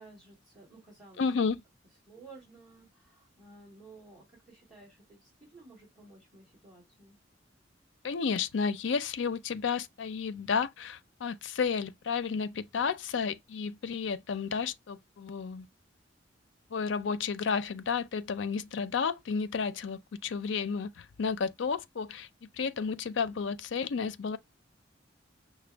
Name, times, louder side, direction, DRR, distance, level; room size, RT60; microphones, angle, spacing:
voice 1, 0.0-1.2 2.0-7.2, right 3 dB, ahead, 2.5 m, -54 dB
voice 2, 1.2-1.6 8.0-15.7 16.7-22.3 22.5-24.4, left 5 dB, 70° left, 0.5 m, -32 dB
5.9 x 2.1 x 3.3 m
head